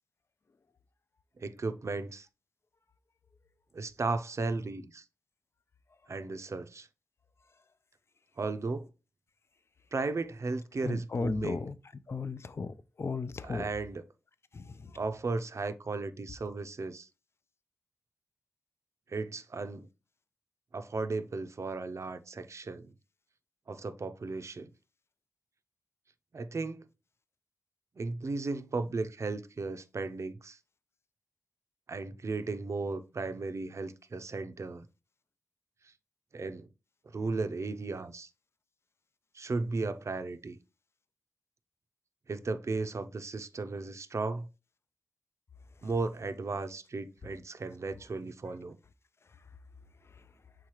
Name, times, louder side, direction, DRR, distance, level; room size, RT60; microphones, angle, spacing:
voice 1, 1.4-2.3 3.7-5.0 6.1-6.9 8.4-8.9 9.9-11.7 13.4-14.1 14.9-17.1 19.1-19.9 20.7-22.9 23.7-24.7 26.3-26.8 28.0-30.6 31.9-34.9 36.3-36.7 37.1-38.3 39.3-40.6 42.3-44.5 45.8-48.8, right 3 dB, 60° right, 0.5 m, -35 dB
voice 2, 10.8-11.7 12.1-12.7 13.0-13.6, left 4 dB, 50° left, 0.4 m, -34 dB
4.8 x 3.7 x 3.0 m
cardioid pair, 45°, 6 cm